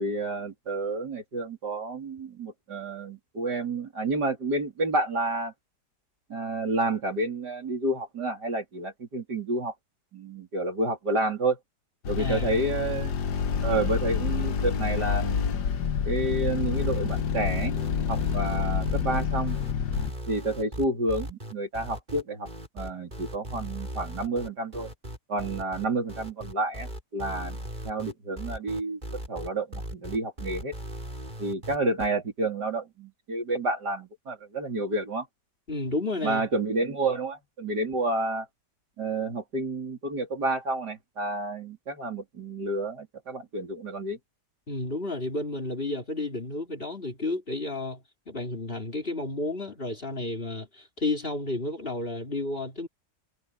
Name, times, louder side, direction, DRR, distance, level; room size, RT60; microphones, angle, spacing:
voice 1, 0.0-5.5 6.3-9.7 10.1-11.6 12.1-13.2 13.6-15.4 16.0-17.8 18.1-19.6 20.3-22.5 22.7-24.9 25.3-27.6 27.8-29.0 29.3-30.7 31.4-35.3 36.2-38.5 39.0-44.2, right 2 dB, 90° right, 4.5 m, -30 dB
sound 1, 12.0-20.1, left 7 dB, 90° left, 1.8 m, -28 dB
voice 2, 12.2-12.5 35.7-36.5 44.7-52.9, left 2 dB, 35° left, 3.6 m, -32 dB
sound 2, 16.7-32.1, right 1 dB, 25° right, 7.8 m, -38 dB
omnidirectional pair, 1.7 m